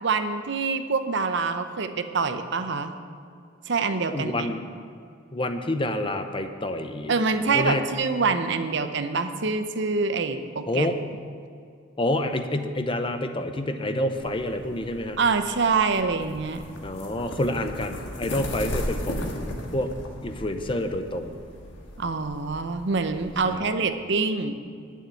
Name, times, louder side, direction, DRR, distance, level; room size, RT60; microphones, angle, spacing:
voice 1, 0.0-2.9 3.7-4.5 7.1-10.9 15.2-16.6 22.0-24.6, right 4 dB, 60° right, 9 dB, 0.7 m, -25 dB
voice 2, 4.1-4.6 5.3-7.1 7.5-7.8 10.7-11.0 12.0-15.2 16.8-19.9 20.2-21.4 23.4-23.7, left 1 dB, 25° left, 8 dB, 0.6 m, -28 dB
sound 1, 14.1-23.6, left 1 dB, 65° left, 1.7 m, -36 dB
9.5 x 7.3 x 9.1 m, 2.3 s
head